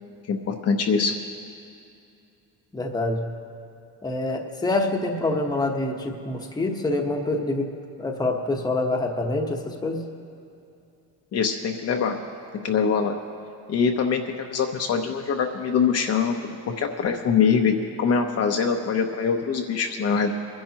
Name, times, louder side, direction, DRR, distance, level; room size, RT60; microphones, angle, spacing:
voice 1, 0.3-1.1 11.3-12.1 12.6-13.2 13.7-20.3, left 6 dB, 45° left, 3 dB, 0.8 m, -23 dB
voice 2, 2.7-3.2 4.0-7.7 8.0-10.0, left 2 dB, 10° left, 2 dB, 1.0 m, -26 dB
25.0 x 10.5 x 2.9 m, 2.6 s
cardioid pair, 130°, 35 cm